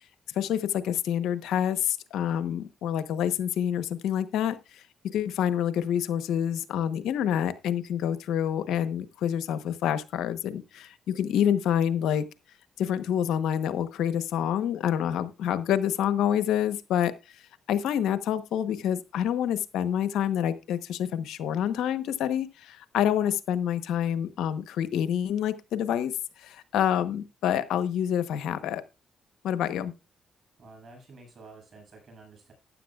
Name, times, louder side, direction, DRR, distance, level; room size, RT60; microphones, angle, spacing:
voice 1, 0.3-12.3 12.8-17.1 17.7-26.1 26.4-28.8 29.4-29.9, left 9 dB, 85° left, 1.0 m, -27 dB
voice 2, 30.6-32.5, right 3 dB, 55° right, 7.4 m, -50 dB
14.0 x 10.5 x 2.4 m
supercardioid pair, 65°, 0 cm